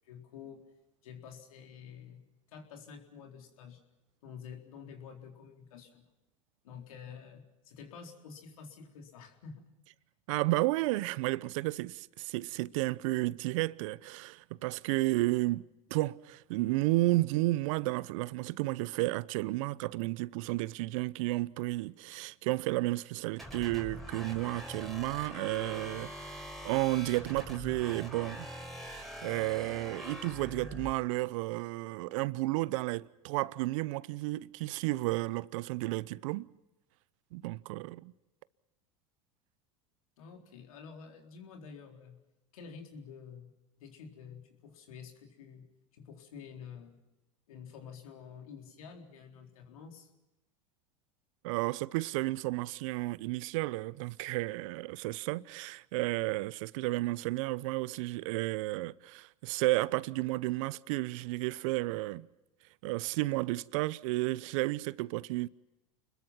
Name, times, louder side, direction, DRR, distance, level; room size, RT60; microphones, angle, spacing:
voice 1, 0.0-0.6 1.0-3.8 4.2-6.0 6.6-9.7 40.2-42.2 42.5-43.5 43.8-47.0 47.5-50.1, left 6 dB, 75° left, 4.1 m, -49 dB
voice 2, 10.3-36.5 37.3-38.1 51.4-62.3 62.8-65.5, right 20 dB, 65° right, 0.8 m, -32 dB
sound 1, 23.4-30.9, equal, ahead, 5.0 m, -44 dB
29.5 x 21.5 x 5.7 m
hypercardioid pair, 90°, 18 cm